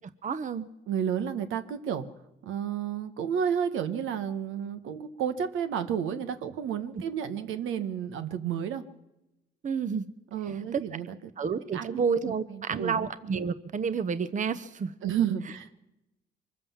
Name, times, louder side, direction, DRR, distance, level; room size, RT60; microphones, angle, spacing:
voice 1, 0.2-0.7 9.6-10.1 10.7-10.8 11.4-14.9, right 6 dB, 40° right, 13 dB, 0.9 m, -30 dB
voice 2, 0.9-2.1 2.4-8.8 10.3-11.2 11.7-12.0 12.3-13.0 15.0-15.8, right 8 dB, 85° right, 9 dB, 1.4 m, -31 dB
24.0 x 15.0 x 7.3 m, 0.94 s
cardioid pair, 90°, 20 cm